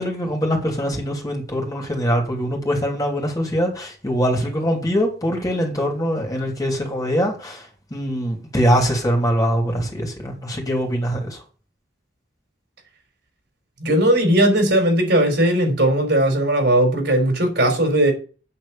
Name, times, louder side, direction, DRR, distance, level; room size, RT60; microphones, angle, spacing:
voice 1, 0.0-11.4, equal, 20° left, 3.1 m, -23 dB
voice 2, 13.8-18.1, right 1 dB, 70° right, 4.2 m, -18 dB
8.9 x 6.6 x 7.1 m
head